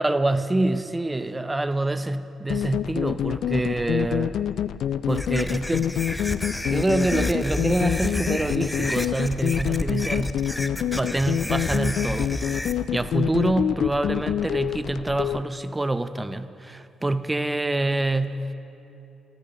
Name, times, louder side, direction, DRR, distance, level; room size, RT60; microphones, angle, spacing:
voice 1, 0.0-4.4 5.1-6.0 6.7-12.3 12.9-18.5, right 2 dB, 20° right, 12 dB, 0.7 m, -26 dB
sound 1, 2.5-15.4, left 10 dB, 60° left, 0.3 m, -26 dB
sound 2, 5.1-12.7, left 1 dB, 10° left, 0.8 m, -31 dB
27.5 x 14.5 x 3.1 m, 3.0 s
hypercardioid pair, 40°, 0 cm